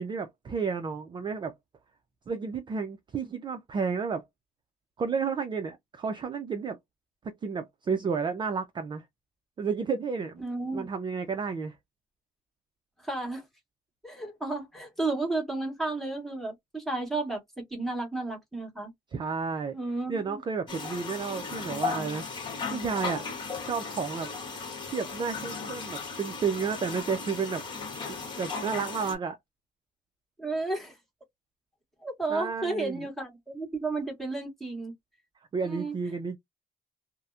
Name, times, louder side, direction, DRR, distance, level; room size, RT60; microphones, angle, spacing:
voice 1, 0.0-1.6 2.3-4.3 5.0-6.8 7.2-9.0 9.6-10.4 10.7-11.8 19.1-19.8 20.1-23.2 23.6-24.3 24.9-27.6 28.4-29.4 32.3-33.1 35.5-36.4, right 5 dB, 25° right, 0.4 m, -31 dB
voice 2, 10.4-10.8 13.0-13.4 14.0-17.4 17.7-18.9 19.7-20.4 30.4-31.0 32.0-34.9 35.6-35.9, right 2 dB, ahead, 1.3 m, -32 dB
sound 1, 20.7-29.2, left 4 dB, 30° left, 1.1 m, -36 dB
2.6 x 2.1 x 2.3 m
cardioid pair, 110°, 17 cm